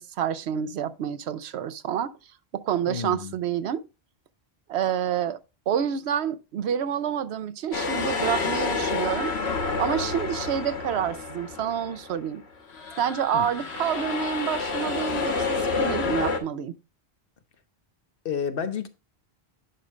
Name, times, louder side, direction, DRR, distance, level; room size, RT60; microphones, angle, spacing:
voice 1, 0.0-2.1 2.5-3.8 4.7-5.4 5.7-9.3 9.8-12.4 13.0-16.7, right 9 dB, 85° right, 0.9 m, -28 dB
voice 2, 2.9-3.3 13.3-13.5 18.2-18.9, left 7 dB, 60° left, 1.0 m, -30 dB
sound 1, 7.7-12.3 12.7-16.4, left 4 dB, 80° left, 1.6 m, -29 dB
10.0 x 5.0 x 3.2 m
omnidirectional pair, 1.1 m